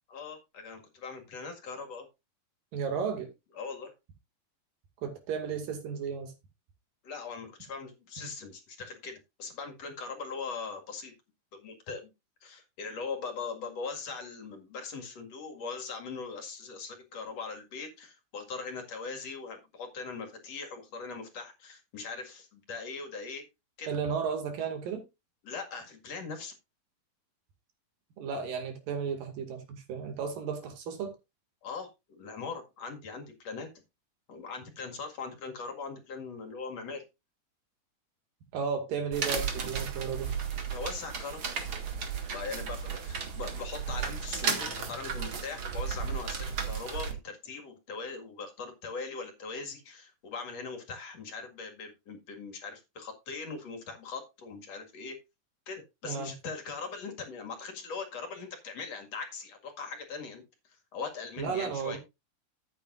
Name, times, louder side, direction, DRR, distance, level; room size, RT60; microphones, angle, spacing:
voice 1, 0.1-2.1 3.6-3.9 7.0-11.1 11.6-12.1 12.4-23.4 23.8-23.9 25.4-26.5 31.6-33.7 34.3-37.0 40.7-41.4 42.3-55.2 55.7-62.0, left 4 dB, 55° left, 2.9 m, -40 dB
voice 2, 2.7-3.3 5.0-6.3 23.9-25.0 28.2-31.2 38.5-40.3 56.0-56.3 61.4-62.0, right 6 dB, 80° right, 3.9 m, -34 dB
sound 1, 39.1-47.1, right 6 dB, 45° right, 2.1 m, -34 dB
13.0 x 8.9 x 2.5 m
omnidirectional pair, 3.8 m